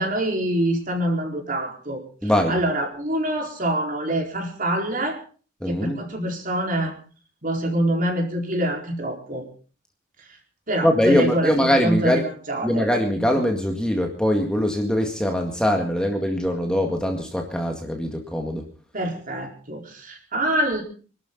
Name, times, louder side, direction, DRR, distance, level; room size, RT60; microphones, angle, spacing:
voice 1, 0.0-5.2 5.7-6.9 7.4-9.4 10.7-11.5 11.8-12.9 18.9-20.8, right 1 dB, 45° right, 2 dB, 4.5 m, -25 dB
voice 2, 2.2-2.5 5.6-6.0 10.8-12.2 12.6-18.7, equal, 5° left, 2 dB, 1.9 m, -22 dB
25.5 x 12.5 x 3.9 m, 0.38 s
head